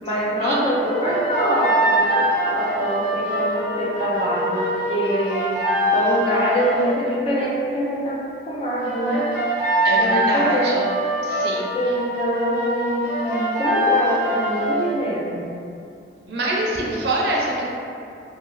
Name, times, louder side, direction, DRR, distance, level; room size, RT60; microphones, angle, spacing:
voice 1, 0.0-5.5 5.9-9.3 9.9-10.8 11.7-15.5, equal, 30° left, -5 dB, 0.4 m, -24 dB
sound 1, 0.8-7.0 8.8-15.0, right 1 dB, 10° left, 0.8 m, -23 dB
voice 2, 9.8-10.8 11.2-11.7 16.3-17.6, right 1 dB, 60° right, -3 dB, 0.5 m, -25 dB
2.9 x 2.7 x 2.4 m, 2.5 s
head